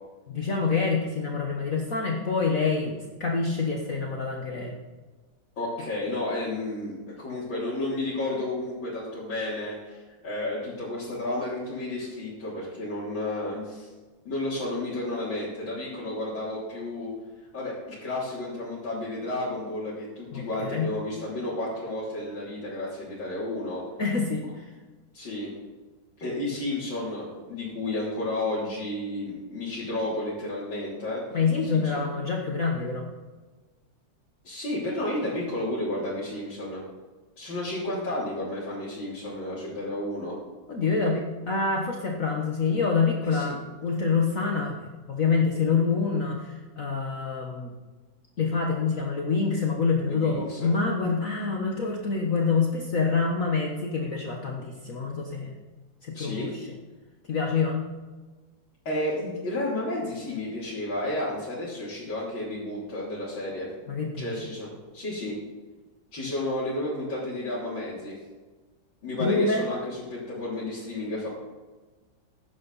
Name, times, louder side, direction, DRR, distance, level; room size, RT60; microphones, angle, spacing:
voice 1, 0.3-4.7 20.3-20.9 24.0-24.6 31.3-33.0 40.7-44.8 45.1-47.7 48.4-55.5 56.0-56.7 57.3-57.8 63.9-64.4 69.2-69.6, left 4 dB, 50° left, 0 dB, 1.6 m, -26 dB
voice 2, 5.6-13.9 14.3-17.1 17.5-23.8 25.1-25.5 26.2-31.2 31.5-32.0 34.4-36.8 37.4-40.3 43.2-43.6 50.1-50.7 56.1-56.5 58.9-63.7 64.2-64.7 64.9-65.3 66.1-68.2 69.0-71.3, left 1 dB, 80° left, -9 dB, 4.1 m, -32 dB
15.5 x 11.0 x 4.1 m, 1.3 s
omnidirectional pair, 2.1 m